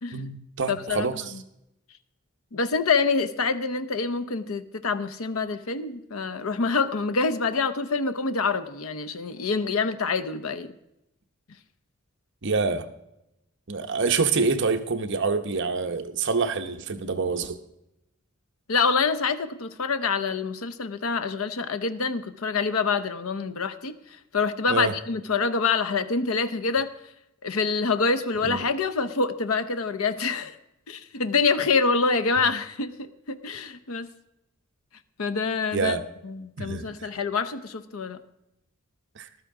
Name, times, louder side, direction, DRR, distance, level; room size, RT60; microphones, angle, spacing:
voice 1, 0.1-1.3 12.4-12.9 13.7-17.6 24.7-24.9 28.4-28.6 35.7-36.0 36.6-37.1 39.2-39.3, right 4 dB, 60° right, 8 dB, 0.9 m, -26 dB
voice 2, 0.7-1.1 2.5-10.7 18.7-23.9 24.3-26.9 27.4-30.5 30.9-34.1 35.2-36.0 36.2-38.2, left 4 dB, 85° left, 11 dB, 0.8 m, -26 dB
14.0 x 12.5 x 3.7 m, 0.84 s
head